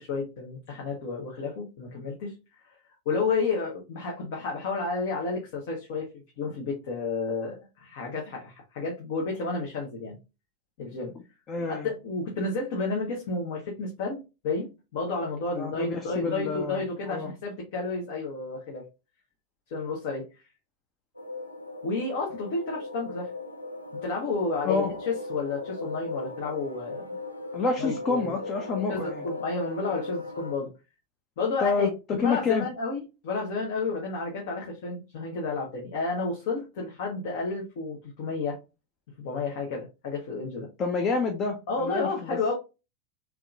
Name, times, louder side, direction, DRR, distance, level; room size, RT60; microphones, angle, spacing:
voice 1, 0.0-2.4 3.0-6.1 6.4-10.2 10.8-11.1 11.7-18.8 19.7-20.3 21.8-23.3 24.0-27.2 27.8-28.3 28.9-30.7 31.4-38.6 39.2-40.7 41.7-42.5, left 3 dB, 50° left, 1.0 m, -31 dB
voice 2, 11.5-11.9 15.6-17.3 24.6-25.1 27.5-29.3 31.6-32.7 40.8-42.4, left 4 dB, 30° left, 0.6 m, -28 dB
sound 1, 21.2-30.5, left 2 dB, 90° left, 0.5 m, -38 dB
3.5 x 3.0 x 2.4 m
figure-of-eight pair, 90°, 0 cm